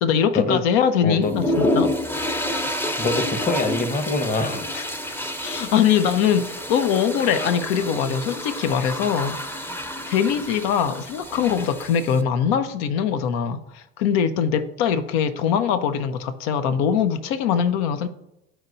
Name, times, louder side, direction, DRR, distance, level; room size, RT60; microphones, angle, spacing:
voice 1, 0.0-1.9 4.7-4.8 5.4-9.4 10.1-18.1, left 8 dB, 65° left, 0.8 m, -22 dB
voice 2, 1.0-1.3 3.0-4.7, left 3 dB, 25° left, 1.1 m, -24 dB
sound 1, 1.2-12.2, left 1 dB, 5° left, 0.7 m, -29 dB
12.0 x 4.5 x 2.7 m
hypercardioid pair, 75°, 33 cm